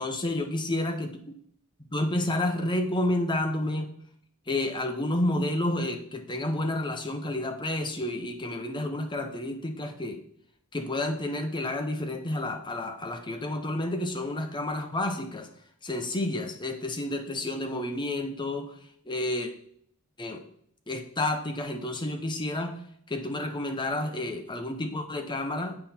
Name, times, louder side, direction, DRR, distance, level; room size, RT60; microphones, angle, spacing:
voice 1, 0.0-1.3 1.9-3.9 4.5-10.2 10.7-15.5 15.8-18.7 19.1-19.5 20.2-20.4 20.9-22.8 23.1-25.8, left 1 dB, 20° left, 5 dB, 0.8 m, -30 dB
7.8 x 5.3 x 4.3 m, 0.65 s
head